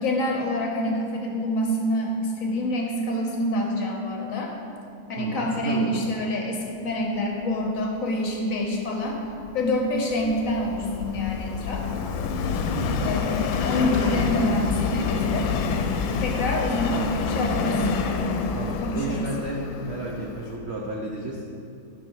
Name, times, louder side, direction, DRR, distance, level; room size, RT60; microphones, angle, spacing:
voice 1, 0.0-4.5 5.1-9.2 9.5-11.9 13.0-15.5 16.2-17.8 18.8-19.3, left 1 dB, 55° left, 1 dB, 1.0 m, -27 dB
voice 2, 5.2-6.0 12.7-13.1 18.5-21.4, right 2 dB, 80° right, -1 dB, 0.6 m, -32 dB
Subway metro underground, 9.2-20.5, left 5 dB, 90° left, 1.4 m, -27 dB
sound 1, 13.5-18.1, left 2 dB, 70° left, 0.4 m, -39 dB
8.6 x 5.4 x 4.6 m, 2.6 s
omnidirectional pair, 2.0 m